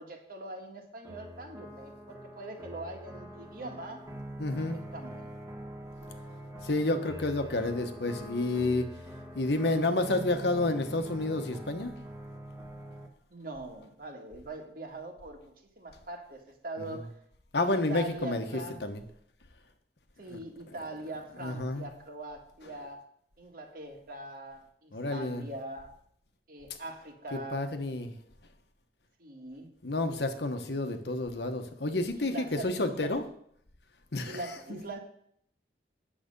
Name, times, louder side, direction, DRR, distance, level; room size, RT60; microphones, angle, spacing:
voice 1, 0.0-4.1 4.6-5.3 13.3-17.2 17.6-18.8 20.2-23.1 23.4-25.9 26.5-27.7 29.2-29.7 32.2-33.2 34.2-35.0, right 2 dB, 55° right, 3 dB, 1.7 m, -42 dB
sound 1, 1.0-13.1, right 1 dB, 15° right, 1.7 m, -44 dB
voice 2, 4.4-4.8 6.6-8.9 9.3-11.9 16.9-17.0 17.5-18.4 18.8-19.0 20.3-20.4 21.4-21.9 24.9-25.5 27.3-28.1 29.8-33.2 34.1-34.4 34.7-34.8, left 2 dB, 75° left, 7 dB, 1.1 m, -30 dB
8.9 x 7.6 x 5.4 m, 0.67 s
head